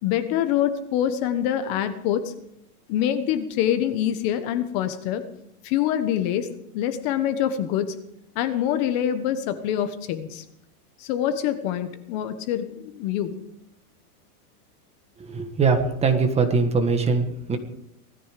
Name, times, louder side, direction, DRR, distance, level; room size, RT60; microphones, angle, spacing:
voice 1, 0.0-2.3 2.9-5.2 5.6-7.9 8.3-10.4 11.0-13.3, left 10 dB, 40° left, 10 dB, 1.3 m, -25 dB
voice 2, 15.3-17.6, right 4 dB, 15° right, 5 dB, 1.5 m, -22 dB
19.5 x 14.0 x 5.1 m, 0.79 s
supercardioid pair, 165°, 46 cm